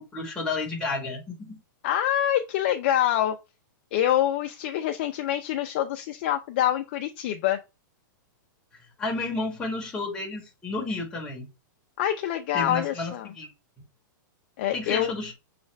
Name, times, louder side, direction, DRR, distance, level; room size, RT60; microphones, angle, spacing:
voice 1, 0.0-1.6 9.0-11.5 12.5-13.5 14.7-15.3, left 3 dB, 5° left, 1.0 m, -31 dB
voice 2, 1.8-3.4 3.9-7.6 12.0-13.3 14.6-15.1, left 11 dB, 30° left, 0.3 m, -25 dB
6.2 x 2.4 x 3.1 m
supercardioid pair, 170°, 11 cm